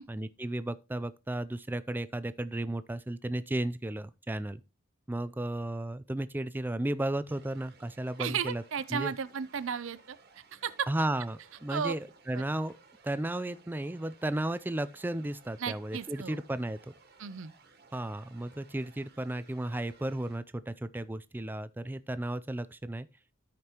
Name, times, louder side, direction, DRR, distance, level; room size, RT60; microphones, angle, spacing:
voice 1, 0.1-4.6 5.1-8.6 8.9-9.1 10.9-12.7 13.0-16.8 17.9-23.1, right 1 dB, 10° right, 0.3 m, -34 dB
sound 1, 7.3-20.4, right 4 dB, 50° right, 1.5 m, -60 dB
voice 2, 8.2-10.9 11.7-11.9 12.3-12.4 15.6-16.4 17.2-17.5, right 7 dB, 70° right, 0.5 m, -34 dB
sound 2, 8.3-8.6 9.5-9.8 11.0-11.3 12.6-12.9 14.2-14.6 15.9-16.3, left 1 dB, 60° left, 3.5 m, -66 dB
13.0 x 5.2 x 2.9 m
head